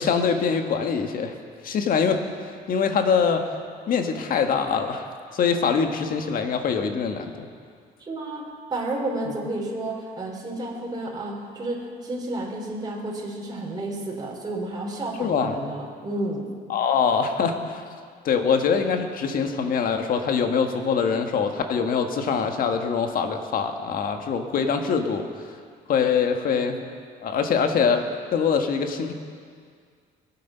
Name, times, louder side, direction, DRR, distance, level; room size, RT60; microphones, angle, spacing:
voice 1, 0.0-1.3 1.6-3.4 3.9-5.1 5.3-7.5 15.2-15.6 16.7-17.8 18.2-25.2 25.9-26.9 27.2-28.0 28.3-29.1, left 6 dB, 55° left, 5 dB, 1.5 m, -23 dB
voice 2, 8.0-16.5, right 2 dB, 25° right, -2 dB, 3.3 m, -31 dB
22.5 x 8.6 x 5.6 m, 2.1 s
cardioid pair, 110°, 17 cm